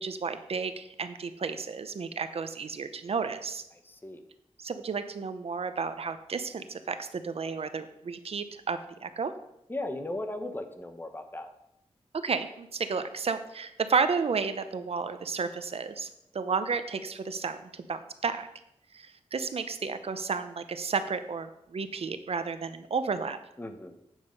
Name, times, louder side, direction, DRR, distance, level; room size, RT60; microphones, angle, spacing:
voice 1, 0.0-3.6 4.6-9.3 12.2-18.5 18.9-23.4, right 5 dB, 65° right, 10 dB, 0.7 m, -32 dB
voice 2, 3.8-4.2 9.7-11.5 23.6-23.9, left 1 dB, 20° left, 7 dB, 1.2 m, -37 dB
9.0 x 7.2 x 5.3 m, 0.81 s
wide cardioid pair, 95°, 11 cm